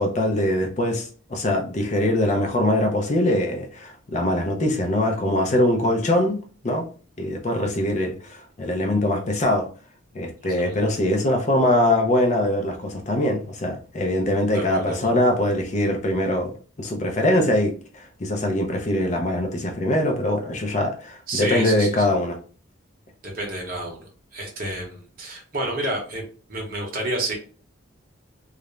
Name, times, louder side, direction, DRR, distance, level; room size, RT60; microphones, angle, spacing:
voice 1, 0.0-6.4 6.6-6.9 7.2-9.7 10.1-22.4, left 1 dB, 35° left, 3 dB, 0.5 m, -22 dB
voice 2, 14.5-15.1 21.3-21.9 23.2-26.2 26.5-27.4, right 1 dB, 45° right, 1 dB, 0.8 m, -29 dB
2.4 x 2.0 x 3.0 m, 0.39 s
head